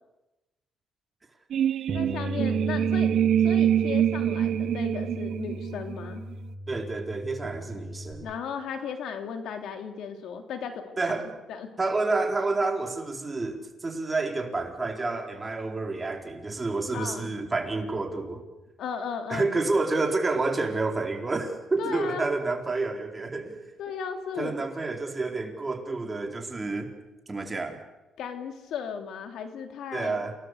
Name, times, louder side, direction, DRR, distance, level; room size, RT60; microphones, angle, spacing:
sound 1, 1.5-6.3, right 10 dB, 70° right, 0.8 m, -25 dB
voice 1, 1.9-3.1 3.4-6.2 8.2-11.7 16.9-17.4 18.8-19.5 21.8-22.3 23.8-24.6 28.2-30.3, left 6 dB, 75° left, 5 dB, 3.3 m, -36 dB
Bass guitar, 1.9-8.1, equal, 55° right, 8.0 m, -36 dB
voice 2, 6.7-8.3 11.0-11.3 11.8-18.4 19.3-23.6 24.3-26.9 27.3-27.8 29.9-30.3, right 3 dB, 25° right, 3 dB, 4.3 m, -29 dB
28.5 x 19.0 x 8.1 m, 1.0 s
cardioid pair, 90°, 0 cm